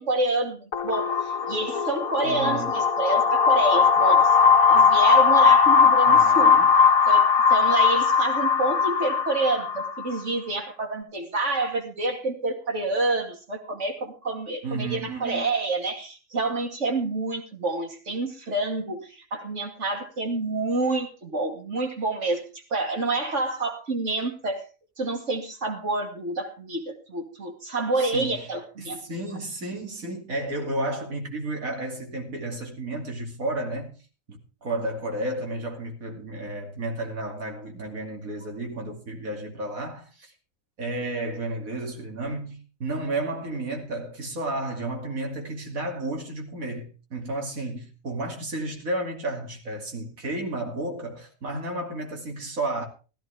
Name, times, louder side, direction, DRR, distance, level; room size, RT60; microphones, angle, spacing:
voice 1, 0.0-4.3 4.7-6.5 7.1-24.6 25.0-29.0, right 2 dB, 60° right, 2.6 m, -28 dB
sound 1, 0.7-10.2, left 6 dB, 85° left, 1.7 m, -19 dB
voice 2, 2.2-2.7 6.1-6.7 14.6-15.5 28.0-28.4 28.8-33.9 34.3-40.3 40.8-52.9, right 2 dB, 85° right, 3.1 m, -32 dB
15.0 x 14.0 x 3.4 m
omnidirectional pair, 1.4 m